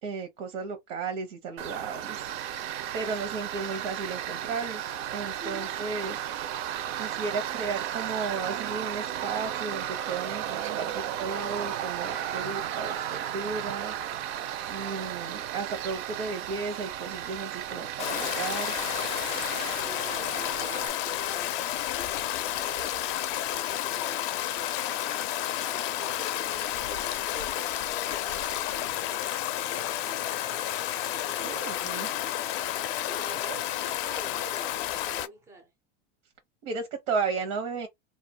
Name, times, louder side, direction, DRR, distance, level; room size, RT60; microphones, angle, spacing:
voice 1, 0.0-2.2 2.9-6.2 6.9-14.3 14.7-18.7 31.4-32.1 33.4-33.5 36.6-37.9, right 4 dB, 85° right, 0.9 m, -34 dB
Tools, 1.6-20.9, right 10 dB, 60° right, 0.5 m, -34 dB
voice 2, 5.3-5.8 19.7-25.0 25.7-32.5 32.8-35.7, right 2 dB, 10° right, 0.4 m, -48 dB
Stream, 18.0-35.3, left 12 dB, 55° left, 0.4 m, -31 dB
2.4 x 2.1 x 2.7 m
supercardioid pair, 150°, 35 cm